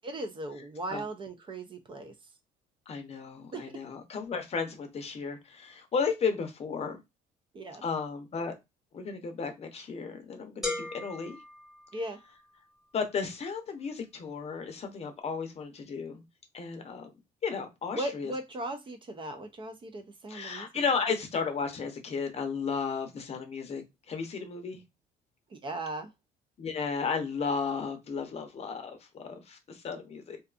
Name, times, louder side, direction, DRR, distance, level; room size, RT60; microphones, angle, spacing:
voice 1, 0.0-2.1 3.5-3.7 7.5-7.8 11.9-12.2 17.9-20.7 25.5-26.1, right 1 dB, 30° right, 0.4 m, -37 dB
voice 2, 2.9-7.0 7.8-8.5 8.9-11.4 12.9-16.2 16.5-17.1 17.4-18.3 20.3-24.8 26.6-30.4, left 5 dB, 40° left, 0.7 m, -34 dB
sound 1, 10.6-12.5, left 3 dB, ahead, 1.1 m, -38 dB
2.5 x 2.3 x 2.4 m
cardioid pair, 110°, 17 cm